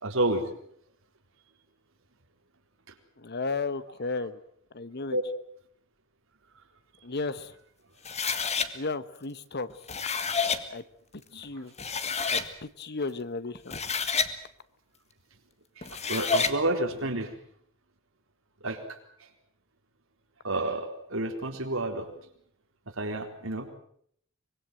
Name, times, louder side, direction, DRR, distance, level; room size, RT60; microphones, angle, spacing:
voice 1, 0.0-0.5 5.1-5.2 11.3-11.6 15.8-17.4 18.6-19.3 20.4-22.3 22.9-23.7, right 2 dB, 70° right, 4 dB, 3.9 m, -30 dB
voice 2, 3.2-4.4 4.7-5.2 7.0-7.5 8.7-9.7 10.7-10.8 11.3-11.7 12.3-13.8, left 3 dB, 50° left, 14 dB, 1.2 m, -34 dB
sound 1, 8.0-8.7 9.7-10.6 11.4-11.5 11.8-12.5 13.5-14.3 15.8-16.6, left 5 dB, 30° left, 1.7 m, -28 dB
24.5 x 22.0 x 7.7 m, 0.65 s
head